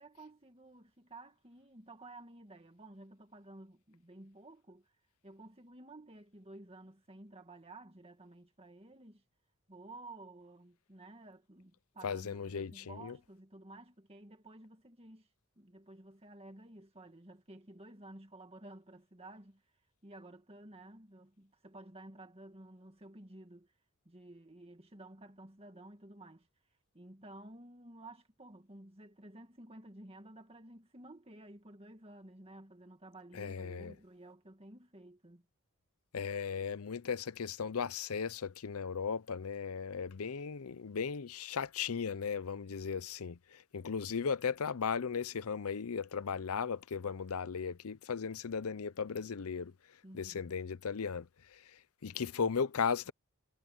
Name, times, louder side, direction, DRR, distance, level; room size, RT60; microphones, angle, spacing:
voice 1, 0.0-4.9 5.2-9.2 9.7-15.3 15.6-19.6 20.0-23.7 24.1-26.5 26.9-35.5 50.0-50.5, right 2 dB, 25° right, 2.1 m, -53 dB
voice 2, 12.0-13.2 33.3-33.9 36.1-49.7 50.1-51.6 52.0-53.1, left 6 dB, 70° left, 0.6 m, -36 dB
head